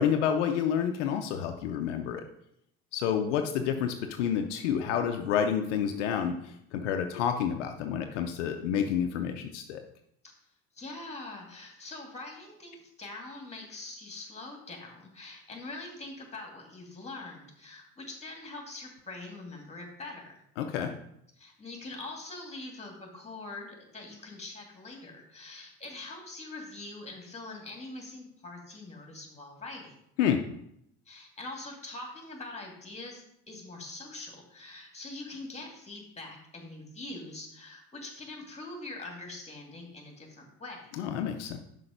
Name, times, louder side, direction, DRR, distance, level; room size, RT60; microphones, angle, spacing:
voice 1, 0.0-2.2 2.9-9.8 20.6-20.9 30.2-30.4 41.0-41.6, left 8 dB, 80° left, 6 dB, 0.7 m, -29 dB
voice 2, 10.7-20.4 21.4-30.0 31.1-41.0, left 2 dB, 20° left, 1 dB, 2.5 m, -43 dB
5.8 x 5.4 x 5.1 m, 0.75 s
hypercardioid pair, 65°, 35 cm